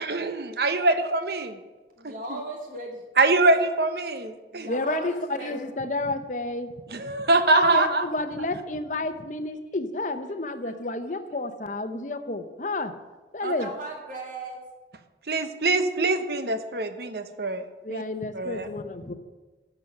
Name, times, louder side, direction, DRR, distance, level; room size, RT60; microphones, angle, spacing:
voice 1, 0.0-1.6 3.2-4.7 6.9-8.1 13.4-13.5 15.3-17.6 17.9-18.0 18.3-18.7, right 2 dB, 65° right, 9 dB, 0.9 m, -23 dB
voice 2, 2.0-3.0 4.5-5.7 10.3-11.2 13.4-14.6, right 2 dB, 50° right, 1 dB, 2.3 m, -38 dB
voice 3, 4.6-5.2 5.4-6.7 7.5-12.9 13.3-13.7 17.8-19.1, left 2 dB, 45° left, 9 dB, 0.8 m, -30 dB
13.0 x 7.0 x 5.8 m, 1.3 s
head